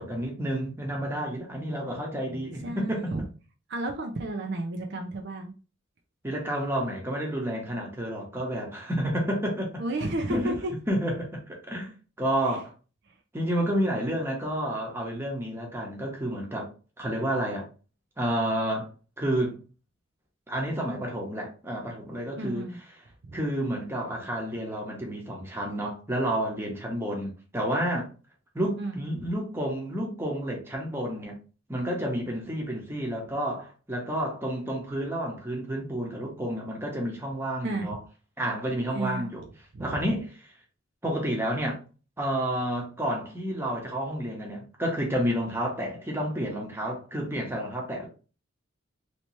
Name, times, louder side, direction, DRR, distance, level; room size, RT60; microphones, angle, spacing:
voice 1, 0.0-3.3 6.2-9.8 10.3-10.5 10.9-11.9 12.2-12.7 13.3-16.7 17.0-17.7 18.2-18.9 19.2-19.6 20.5-22.6 23.3-28.1 28.5-31.4 31.7-38.0 38.4-39.4 39.8-40.5 41.0-41.8 42.2-48.1, right 1 dB, 10° right, 0.9 m, -30 dB
voice 2, 2.6-3.2 3.7-5.5 9.8-10.7 12.5-12.6 22.4-22.8 23.2-23.4 28.8-29.0 37.6-38.0 38.9-39.2 39.7-40.0, right 2 dB, 60° right, 0.5 m, -32 dB
3.2 x 2.9 x 3.1 m
head